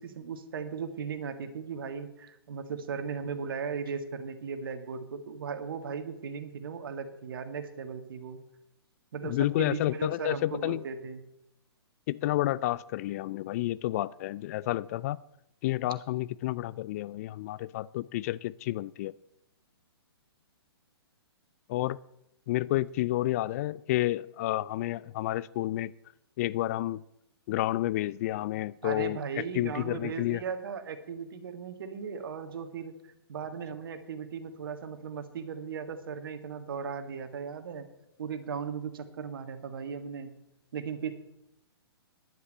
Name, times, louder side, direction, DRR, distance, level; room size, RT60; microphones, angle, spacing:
voice 1, 0.0-8.4 9.1-11.2 28.8-32.9 33.3-37.9 38.2-40.3 40.7-41.1, right 6 dB, 60° right, 9 dB, 1.8 m, -37 dB
voice 2, 9.2-10.8 12.1-15.2 15.6-19.1 21.7-22.0 22.5-25.9 26.4-27.0 27.5-30.4, left 15 dB, 35° left, 19 dB, 0.4 m, -30 dB
10.5 x 9.6 x 7.8 m, 0.82 s
figure-of-eight pair, 120°, 13 cm